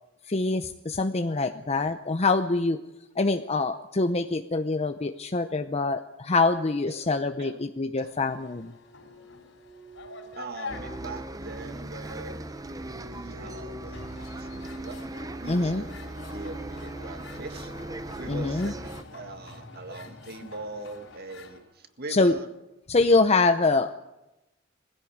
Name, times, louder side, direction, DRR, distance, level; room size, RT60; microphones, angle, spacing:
voice 1, 0.3-2.8 3.2-8.7 15.5-15.8 18.3-18.7 22.1-22.4 22.9-24.1, left 3 dB, 30° left, 8 dB, 0.7 m, -25 dB
sound 1, 8.0-21.6, left 4 dB, 65° left, 5.3 m, -47 dB
voice 2, 10.4-12.5 13.0-15.0 15.4-15.9 16.3-17.7 18.2-22.5, right 2 dB, 55° right, 8 dB, 1.9 m, -41 dB
Bus, 10.7-19.0, right 2 dB, 20° right, 0.8 m, -38 dB
sound 2, 16.2-21.5, left 1 dB, 90° left, 3.7 m, -52 dB
20.0 x 15.5 x 8.7 m, 0.95 s
head